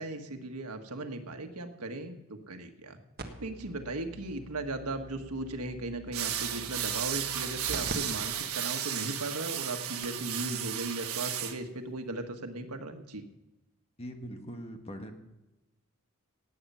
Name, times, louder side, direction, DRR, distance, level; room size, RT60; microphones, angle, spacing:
voice 1, 0.0-3.0 3.4-13.2, right 2 dB, 90° right, 6 dB, 1.4 m, -37 dB
sound 1, 3.2-7.9 8.3-8.4 9.0-9.1 9.7-9.8 10.0-10.3 11.5-11.6, right 2 dB, 45° right, 1.5 m, -45 dB
sound 2, 6.1-11.5, right 10 dB, 70° right, 1.4 m, -34 dB
voice 2, 14.0-15.1, equal, 25° left, 5 dB, 1.5 m, -41 dB
17.5 x 8.8 x 5.6 m, 0.97 s
head